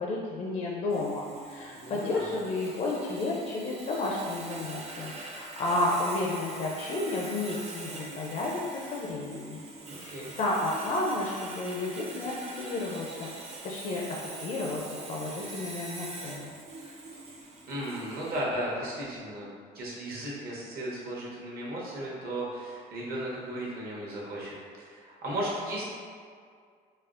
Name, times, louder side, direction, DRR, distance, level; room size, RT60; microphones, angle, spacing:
voice 1, 0.0-9.6 10.0-13.3 13.6-16.5, left 2 dB, 45° left, -3 dB, 0.4 m, -32 dB
Sawing, 0.9-18.4, right 2 dB, 40° right, 0.6 m, -43 dB
voice 2, 1.7-2.3 9.8-10.3 17.7-25.8, right 1 dB, 65° right, -5 dB, 1.0 m, -35 dB
4.1 x 2.0 x 2.5 m, 2.1 s
cardioid pair, 110°, 17 cm